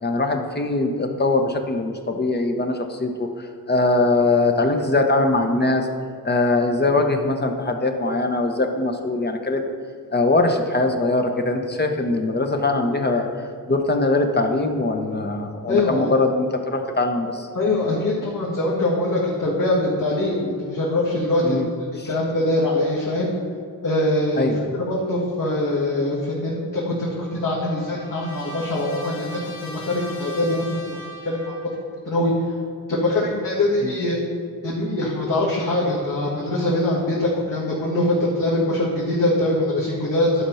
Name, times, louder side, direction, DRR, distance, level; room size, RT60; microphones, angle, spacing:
voice 1, 0.0-5.9 6.2-9.6 10.1-17.5 21.4-21.7 24.4-24.7 33.8-33.9, left 2 dB, 25° left, 4 dB, 1.0 m, -22 dB
voice 2, 15.7-16.1 17.5-21.6 22.0-23.3 23.8-24.5 24.9-31.0 31.2-31.6 32.0-32.6 32.9-34.2 34.6-40.5, left 1 dB, 55° left, -7 dB, 1.9 m, -23 dB
Trumpet, 27.0-31.9, equal, 80° left, 1.4 m, -40 dB
11.0 x 4.4 x 5.6 m, 2.2 s
cardioid pair, 80°, 38 cm